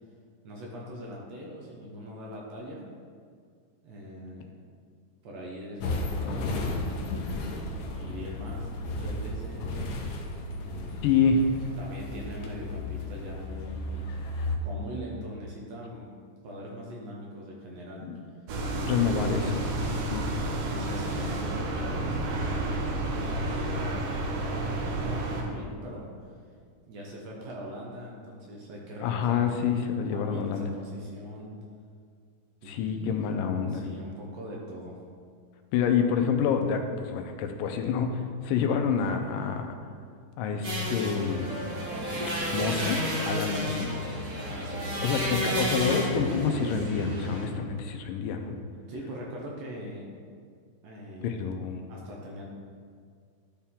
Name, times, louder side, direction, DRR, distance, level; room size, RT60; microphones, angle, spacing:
voice 1, 0.4-2.9 3.8-4.6 5.2-7.3 7.9-9.8 10.5-11.0 11.8-14.1 14.6-16.1 16.4-18.0 20.6-22.6 23.5-24.0 24.4-26.3 26.9-29.5 30.1-31.5 32.6-33.4 33.7-35.0 44.4-44.9 48.9-50.1 50.8-51.5 51.9-52.5, equal, 65° right, -3 dB, 1.8 m, -42 dB
sound 1, 5.8-14.6, left 2 dB, 75° left, 1.9 m, -34 dB
voice 2, 11.0-11.5 18.0-18.1 18.8-20.3 29.0-30.7 32.7-33.9 35.7-39.7 40.4-41.5 42.5-43.9 44.9-48.6 51.2-51.8, left 6 dB, 90° left, 5 dB, 2.3 m, -27 dB
sound 2, 18.5-25.4, right 2 dB, 80° right, 2.5 m, -30 dB
sound 3, 40.6-47.4, equal, 45° right, 1.3 m, -31 dB
12.0 x 4.4 x 3.7 m, 2.1 s
omnidirectional pair, 3.8 m